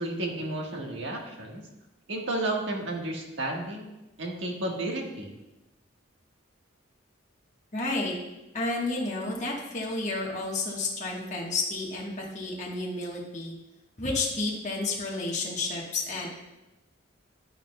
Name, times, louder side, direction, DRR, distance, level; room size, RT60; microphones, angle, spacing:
voice 1, 0.0-1.6 2.1-3.9 4.2-5.3, right 2 dB, 70° right, 0 dB, 1.4 m, -32 dB
voice 2, 7.7-8.1 8.5-13.5 14.0-16.3, left 3 dB, 35° left, -3 dB, 1.3 m, -31 dB
11.0 x 8.7 x 2.2 m, 1.0 s
head